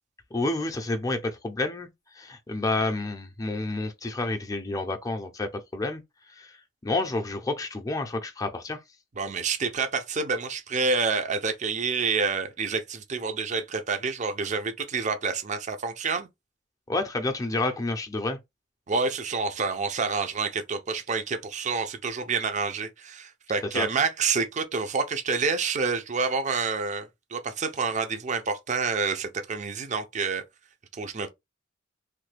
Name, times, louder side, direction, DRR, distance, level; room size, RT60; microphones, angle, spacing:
voice 1, 0.3-1.9 2.1-6.0 6.4-6.5 6.8-8.8 16.9-18.4 23.7-23.9, left 2 dB, 20° left, 0.5 m, -29 dB
voice 2, 9.2-16.3 18.9-30.4 31.0-31.3, right 4 dB, 40° right, 0.5 m, -28 dB
3.1 x 2.2 x 3.2 m
head